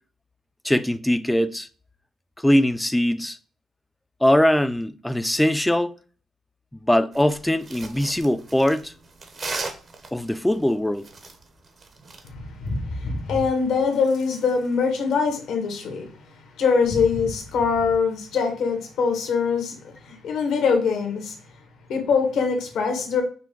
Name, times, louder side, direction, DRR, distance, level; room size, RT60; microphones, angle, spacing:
voice 1, 0.6-1.7 2.4-3.4 4.2-5.9 6.7-8.9 10.1-11.1, left 1 dB, 5° left, 0.4 m, -21 dB
sound 1, 7.1-12.3, right 3 dB, 45° right, 0.8 m, -37 dB
voice 2, 12.2-21.4 21.9-23.2, left 5 dB, 75° left, 1.3 m, -23 dB
5.8 x 2.2 x 3.5 m
cardioid pair, 90°, 0 cm